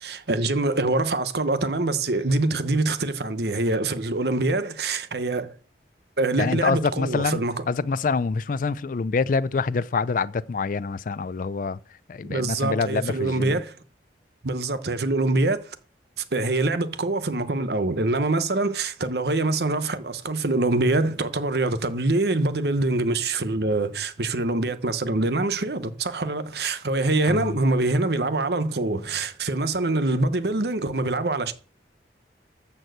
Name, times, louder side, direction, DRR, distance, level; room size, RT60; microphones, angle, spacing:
voice 1, 0.0-5.5 6.2-7.6 12.2-13.7 14.4-15.8 16.3-31.5, right 2 dB, 65° right, 1.0 m, -24 dB
voice 2, 6.4-11.8 12.1-13.6 27.3-27.6, left 4 dB, 45° left, 0.4 m, -26 dB
12.5 x 4.5 x 7.9 m
head